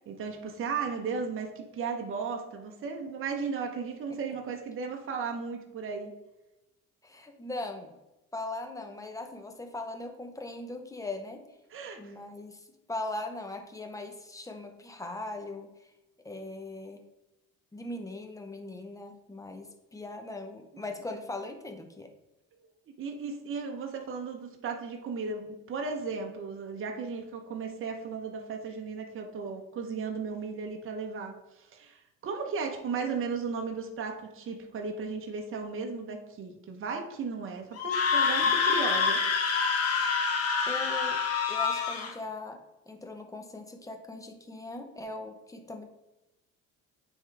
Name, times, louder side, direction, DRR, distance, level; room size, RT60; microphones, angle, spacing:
voice 1, 0.1-6.1 11.7-12.1 23.0-39.2, right 5 dB, 40° right, 3 dB, 0.9 m, -35 dB
voice 2, 7.0-8.0 8.3-11.4 12.0-15.7 16.2-17.0 17.7-22.1 38.4-38.5 40.1-40.3 40.7-41.2 41.5-42.6 42.9-45.8, left 2 dB, 10° left, 4 dB, 0.9 m, -40 dB
Screaming, 37.8-42.1, left 5 dB, 50° left, 1.2 m, -26 dB
8.9 x 3.7 x 3.4 m, 0.98 s
cardioid pair, 105°, 32 cm